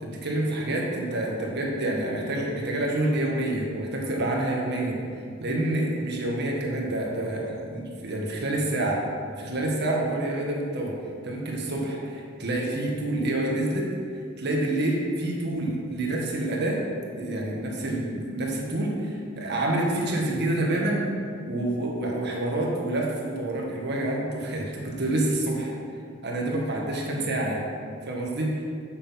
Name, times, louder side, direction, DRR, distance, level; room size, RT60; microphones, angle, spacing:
voice 1, 0.0-5.0 5.4-9.0 9.4-11.0 11.2-13.9 14.4-16.8 17.1-21.1 21.5-25.7 26.2-27.7 28.1-28.6, right 1 dB, 60° right, -2 dB, 1.6 m, -27 dB
7.4 x 6.5 x 5.8 m, 2.2 s
head